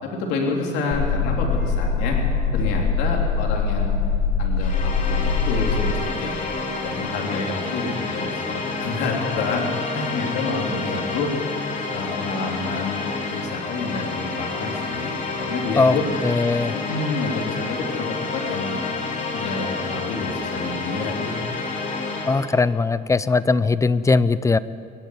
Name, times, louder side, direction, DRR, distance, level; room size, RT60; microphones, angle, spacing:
voice 1, 0.0-2.2 2.5-4.0 4.4-6.4 6.8-11.3 11.9-13.0 13.3-16.1 16.7-18.8 19.3-21.4, left 3 dB, 90° left, 0 dB, 3.6 m, -28 dB
sound 1, 0.9-5.9, left 5 dB, 75° left, 7.5 m, -22 dB
sound 2, 4.6-22.5, left 3 dB, 50° left, 3.9 m, -29 dB
voice 2, 16.2-16.8 22.3-24.6, left 4 dB, 20° left, 16 dB, 0.7 m, -19 dB
23.5 x 12.0 x 9.6 m, 2.3 s
cardioid pair, 110°, 17 cm